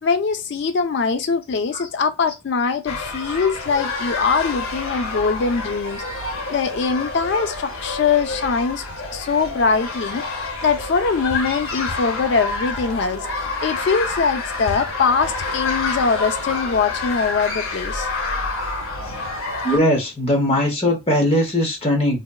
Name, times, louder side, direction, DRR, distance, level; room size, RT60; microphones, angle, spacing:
voice 1, 0.0-6.0 6.5-8.8 9.1-13.3 13.6-18.1, left 5 dB, 55° left, 0.3 m, -22 dB
sound 1, 2.9-19.8, left 3 dB, 90° left, 0.7 m, -28 dB
voice 2, 19.6-22.2, left 1 dB, 30° left, 0.8 m, -19 dB
4.0 x 2.1 x 2.3 m
head